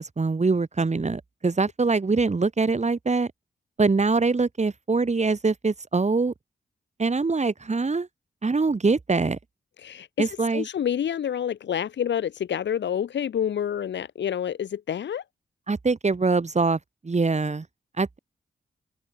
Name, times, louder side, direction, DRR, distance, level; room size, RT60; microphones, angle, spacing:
voice 1, 0.0-3.3 3.8-6.3 7.0-8.1 8.4-9.4 10.2-10.7 15.7-17.7 18.0-18.2, right 4 dB, 40° right, 7.1 m, -23 dB
voice 2, 9.8-15.2, left 9 dB, 90° left, 4.7 m, -28 dB
open air
cardioid pair, 65°, 18 cm